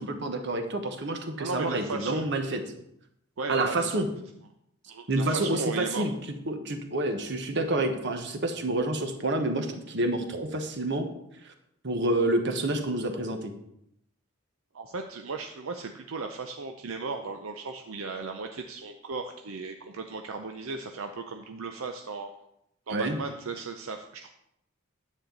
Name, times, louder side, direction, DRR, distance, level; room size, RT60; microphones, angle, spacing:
voice 1, 0.0-2.6 3.5-4.1 5.1-6.1 6.5-11.1 11.8-13.5 22.9-23.2, right 2 dB, 55° right, 6 dB, 1.2 m, -28 dB
voice 2, 1.4-2.2 3.4-4.0 4.9-6.1 14.7-22.3 22.9-24.3, right 4 dB, 75° right, 5 dB, 0.6 m, -36 dB
9.9 x 8.5 x 3.9 m, 0.79 s
head